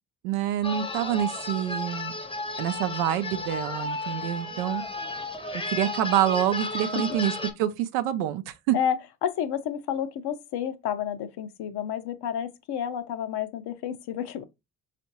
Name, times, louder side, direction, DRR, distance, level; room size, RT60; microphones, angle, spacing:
voice 1, 0.2-2.1 2.6-4.8 5.7-8.8, right 11 dB, 80° right, 0.6 m, -27 dB
sound 1, 0.6-7.5, left 2 dB, 10° left, 0.7 m, -33 dB
voice 2, 8.7-14.4, left 9 dB, 55° left, 0.7 m, -30 dB
4.3 x 2.5 x 2.8 m
hypercardioid pair, 55°, 47 cm